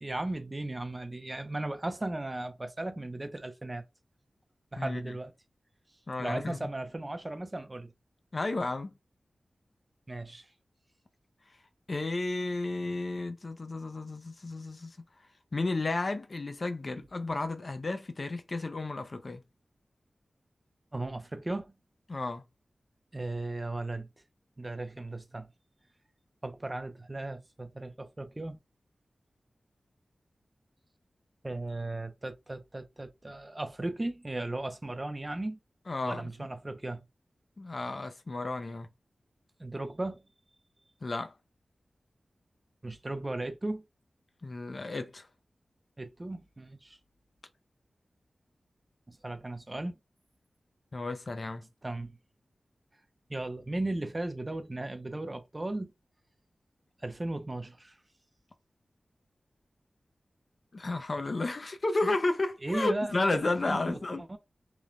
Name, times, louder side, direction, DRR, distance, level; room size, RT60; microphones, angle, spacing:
voice 1, 0.0-3.8 4.7-5.3 6.2-7.9 10.1-10.5 20.9-21.7 23.1-24.1 24.6-25.5 26.4-28.6 31.4-35.6 36.0-37.0 39.6-40.2 42.8-43.8 46.0-47.0 49.1-50.0 51.8-52.2 53.3-55.9 57.0-58.0 62.6-63.4 63.7-64.4, right 2 dB, 25° right, 0.4 m, -36 dB
voice 2, 4.8-5.1 6.1-6.6 8.3-8.9 11.9-15.0 15.5-19.4 22.1-22.4 35.9-36.3 37.6-38.9 41.0-41.3 44.4-45.3 50.9-51.7 60.7-64.2, left 2 dB, 50° left, 0.4 m, -32 dB
3.0 x 2.1 x 2.5 m
wide cardioid pair, 75°, 0 cm